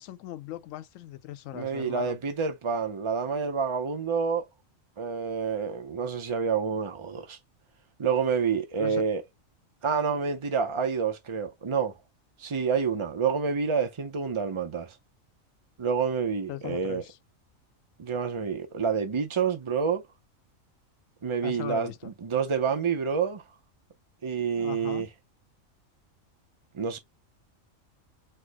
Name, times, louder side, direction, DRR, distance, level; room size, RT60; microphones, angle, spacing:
voice 1, 0.0-2.2 8.8-9.1 16.5-17.2 21.4-22.1 24.5-25.1, left 14 dB, 75° left, 0.9 m, -39 dB
voice 2, 1.5-4.4 5.0-7.4 8.0-9.2 9.8-11.9 12.4-15.0 15.8-17.0 18.0-20.0 21.2-23.4 24.2-25.1 26.7-27.0, right 6 dB, 45° right, 0.4 m, -28 dB
4.4 x 2.0 x 4.5 m
omnidirectional pair, 1.4 m